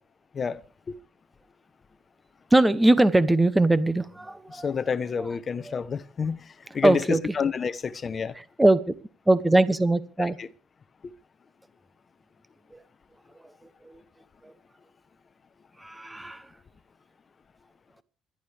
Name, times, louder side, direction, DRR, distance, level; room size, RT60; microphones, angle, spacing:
voice 1, 2.5-4.7 5.7-5.8 6.8-7.2 8.4-8.9 9.3-10.4 12.7-12.8 13.8-14.0 14.4-14.5 15.8-16.5, right 2 dB, 10° right, 0.9 m, -21 dB
voice 2, 4.5-6.4 6.7-8.3 10.2-10.5, left 6 dB, 30° left, 0.9 m, -29 dB
27.0 x 11.5 x 3.4 m
cardioid pair, 145°, 0 cm